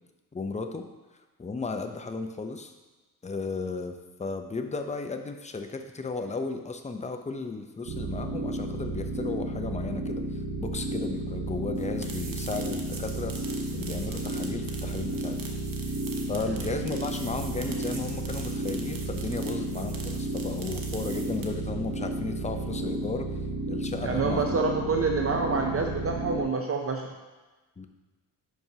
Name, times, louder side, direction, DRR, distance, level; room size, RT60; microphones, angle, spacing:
voice 1, 0.3-0.8 1.4-2.7 3.2-13.3 13.7-15.4 16.3-23.4 23.7-24.6 27.8-27.9, left 3 dB, 20° left, 6 dB, 0.6 m, -35 dB
sound 1, 7.9-26.4, right 1 dB, 80° right, 1.2 m, -32 dB
sound 2, 11.8-21.7, right 4 dB, 60° right, 1.1 m, -43 dB
voice 2, 24.0-27.1, right 4 dB, 40° right, 2 dB, 0.6 m, -27 dB
10.5 x 4.5 x 2.8 m, 1.2 s
cardioid pair, 80°, 38 cm